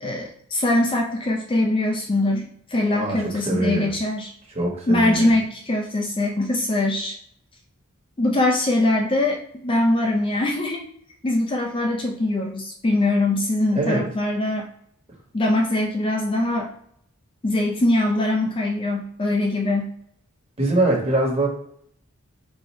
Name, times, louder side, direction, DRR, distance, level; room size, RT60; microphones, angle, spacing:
voice 1, 0.0-4.3 4.9-7.2 8.2-10.8 11.2-14.7 15.3-16.7 17.4-19.9, left 1 dB, 25° left, 1 dB, 0.4 m, -22 dB
voice 2, 2.9-3.9 4.5-5.3 13.7-14.0 20.6-21.5, right 2 dB, 25° right, -2 dB, 1.4 m, -23 dB
4.6 x 2.7 x 4.2 m, 0.69 s
head